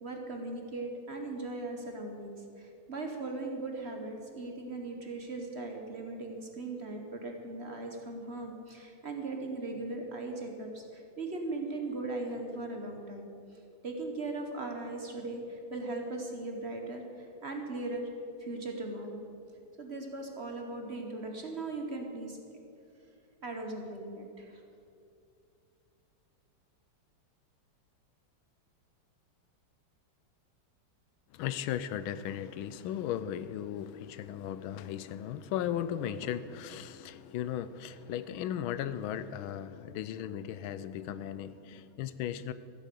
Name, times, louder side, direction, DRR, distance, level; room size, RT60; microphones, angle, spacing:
voice 1, 0.0-18.1 18.4-19.2 19.8-22.4 23.4-24.6, right 2 dB, 40° right, 3 dB, 1.1 m, -39 dB
voice 2, 31.3-42.5, left 10 dB, 85° left, 14 dB, 1.4 m, -36 dB
14.0 x 8.3 x 6.8 m, 2.6 s
omnidirectional pair, 2.2 m